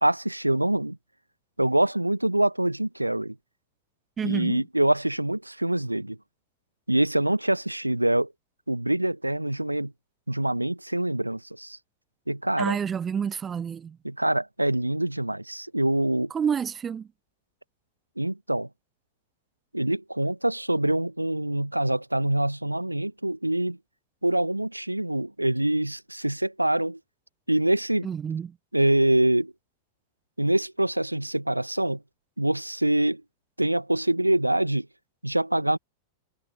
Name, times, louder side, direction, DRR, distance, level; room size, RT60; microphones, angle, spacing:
voice 1, 0.0-1.0 1.6-3.4 4.2-6.2 6.9-8.3 8.7-9.9 10.3-11.8 12.3-12.8 14.0-16.3 18.2-18.7 19.7-23.8 24.2-27.0 27.5-28.1 28.7-29.5 30.4-32.0 32.4-33.2 33.6-34.9 35.2-35.8, right 1 dB, 85° right, 1.8 m, -25 dB
voice 2, 4.2-4.6 12.6-14.0 16.3-17.1 28.0-28.6, right 7 dB, 20° right, 0.9 m, -29 dB
figure-of-eight pair, 90°, 0 cm